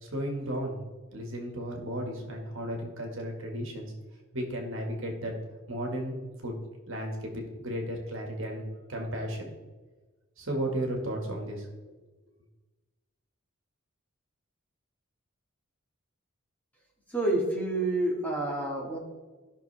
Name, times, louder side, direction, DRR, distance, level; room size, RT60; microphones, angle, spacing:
voice 1, 0.0-0.8 1.1-3.9 4.3-5.3 5.7-6.6 6.9-8.6 8.9-9.5 10.4-11.7, equal, 65° right, 1 dB, 1.8 m, -34 dB
voice 2, 17.1-19.0, right 2 dB, 5° left, -4 dB, 2.0 m, -28 dB
14.0 x 6.0 x 3.4 m, 1.3 s
head